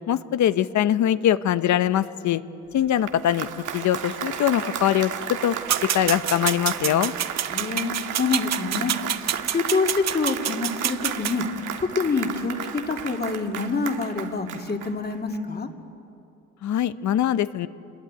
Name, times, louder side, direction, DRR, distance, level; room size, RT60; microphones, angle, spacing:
voice 1, 0.1-2.4 2.7-5.5 5.9-7.1 16.6-17.7, left 11 dB, 70° left, 13 dB, 0.9 m, -22 dB
Applause, 2.8-15.4, right 8 dB, 80° right, 1.9 m, -34 dB
sound 1, 5.7-11.4, right 10 dB, 60° right, 0.9 m, -27 dB
voice 2, 7.5-8.9 9.5-11.4 11.8-15.7, left 4 dB, 30° left, 3 dB, 2.5 m, -26 dB
27.5 x 21.0 x 9.4 m, 2.8 s
cardioid pair, 90°, 30 cm